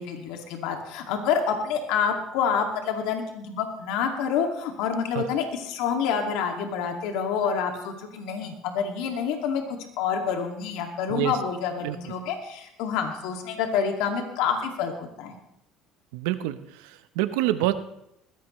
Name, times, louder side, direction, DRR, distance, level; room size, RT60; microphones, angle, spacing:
voice 1, 0.0-9.6 10.0-15.4, left 7 dB, 75° left, 3 dB, 2.4 m, -28 dB
voice 2, 16.1-17.7, right 15 dB, 80° right, 11 dB, 1.0 m, -27 dB
20.5 x 15.0 x 3.3 m, 0.80 s
supercardioid pair, 85°, 0 cm